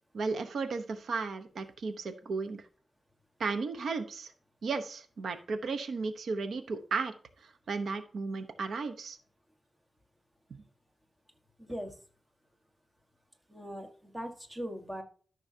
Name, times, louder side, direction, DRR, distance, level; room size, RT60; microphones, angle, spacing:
voice 1, 0.1-2.6 3.4-4.3 4.6-7.1 7.4-9.2 10.5-10.6, right 4 dB, 90° right, 9 dB, 0.9 m, -34 dB
voice 2, 11.6-12.0 13.5-15.0, equal, 10° right, 5 dB, 1.4 m, -40 dB
13.5 x 6.2 x 2.8 m, 0.43 s
wide cardioid pair, 135°, 0 cm